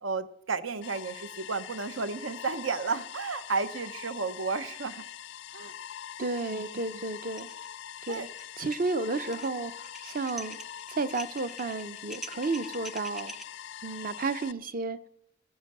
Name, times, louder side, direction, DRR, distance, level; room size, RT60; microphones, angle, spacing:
voice 1, 0.0-5.0 5.5-5.7 6.5-6.6 6.9-7.0 8.1-8.3, right 4 dB, 75° right, 0.8 m, -33 dB
sound 1, 0.8-14.5, left 10 dB, 70° left, 0.5 m, -43 dB
voice 2, 6.2-7.5 8.1-8.3 8.6-10.6 10.9-13.4 13.8-15.0, right 3 dB, 45° right, 0.7 m, -32 dB
sound 2, 7.4-7.7 7.9-8.4 8.7-13.4, equal, ahead, 0.5 m, -44 dB
15.0 x 14.5 x 6.7 m
head